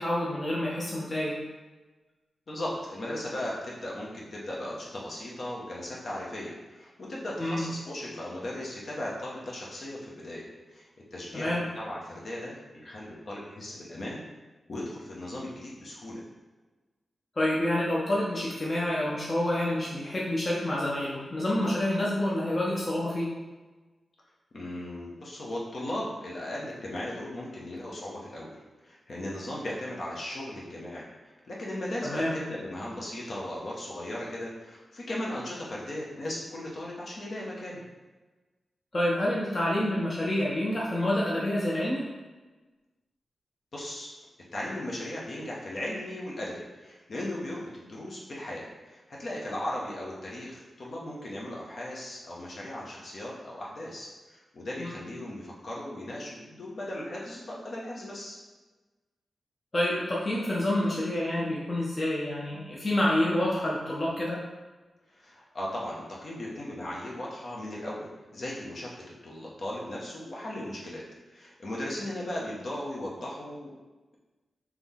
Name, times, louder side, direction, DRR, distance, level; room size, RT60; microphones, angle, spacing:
voice 1, 0.0-1.4 7.4-7.6 11.3-11.6 17.4-23.3 32.0-32.4 38.9-42.0 54.8-54.9 59.7-64.4, left 1 dB, 35° left, -5 dB, 0.8 m, -28 dB
voice 2, 2.5-10.4 10.7-14.2 14.7-16.2 24.5-28.6 28.8-31.1 31.5-37.8 43.7-44.1 44.5-58.4 65.1-68.9 69.2-71.0 71.3-73.7, left 1 dB, 60° left, -4 dB, 1.0 m, -37 dB
3.7 x 3.0 x 3.6 m, 1.2 s
wide cardioid pair, 85°, 0 cm